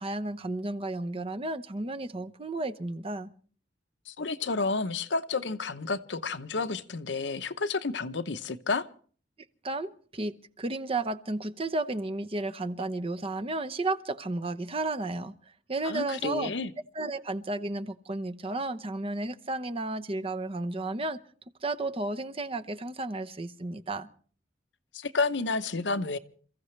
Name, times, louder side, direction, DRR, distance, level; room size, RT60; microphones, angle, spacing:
voice 1, 0.0-3.3 9.6-15.3 15.7-16.5 16.9-21.2 21.6-24.1, right 2 dB, 30° right, 0.8 m, -33 dB
voice 2, 4.1-8.9 15.8-16.7 24.9-26.2, left 3 dB, 75° left, 0.8 m, -30 dB
28.5 x 15.0 x 3.2 m
head